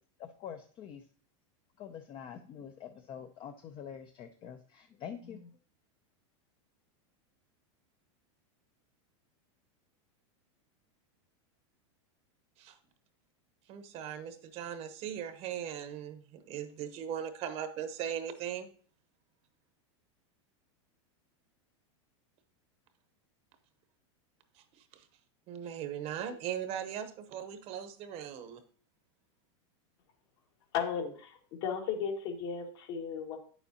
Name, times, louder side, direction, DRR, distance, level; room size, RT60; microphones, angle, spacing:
voice 1, 0.2-1.0 1.8-5.5, left 8 dB, 30° left, 7 dB, 0.5 m, -46 dB
voice 2, 13.7-18.7 24.9-25.1 25.5-28.6, right 9 dB, 40° right, 10 dB, 0.9 m, -39 dB
voice 3, 30.7-33.4, left 7 dB, 60° left, 2 dB, 1.8 m, -35 dB
8.6 x 7.0 x 2.8 m, 0.44 s
supercardioid pair, 130°, 16 cm